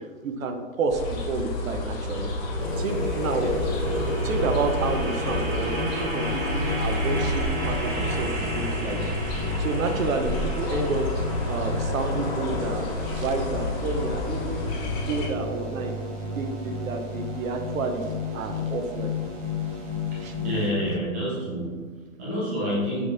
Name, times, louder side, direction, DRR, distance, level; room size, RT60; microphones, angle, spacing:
voice 1, 0.0-2.3 2.8-3.5 4.2-9.1 9.6-11.1 11.5-14.7 15.0-15.9 16.3-19.1 20.2-20.3, right 4 dB, 75° right, 6 dB, 0.7 m, -30 dB
sound 1, 0.9-15.3, left 1 dB, 30° left, 1.0 m, -30 dB
sound 2, 2.6-20.7, left 2 dB, 35° right, 0.9 m, -32 dB
voice 2, 20.4-23.1, equal, 10° right, -7 dB, 0.4 m, -28 dB
5.9 x 3.5 x 2.5 m, 1.5 s
hypercardioid pair, 145°, 41 cm